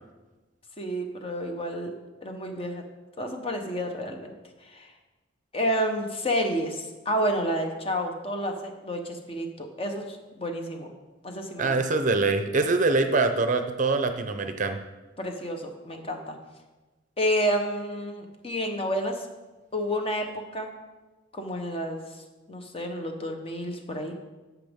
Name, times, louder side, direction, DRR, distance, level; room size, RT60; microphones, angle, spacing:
voice 1, 0.8-1.9 2.2-2.8 3.2-4.3 4.6-4.9 5.5-10.9 11.2-11.7 15.2-16.4 17.2-19.3 19.7-20.7 21.3-22.0 22.5-24.1, equal, 30° left, 3 dB, 0.9 m, -30 dB
voice 2, 11.6-14.8, right 3 dB, 40° right, 7 dB, 0.6 m, -24 dB
13.5 x 6.0 x 3.6 m, 1.2 s
head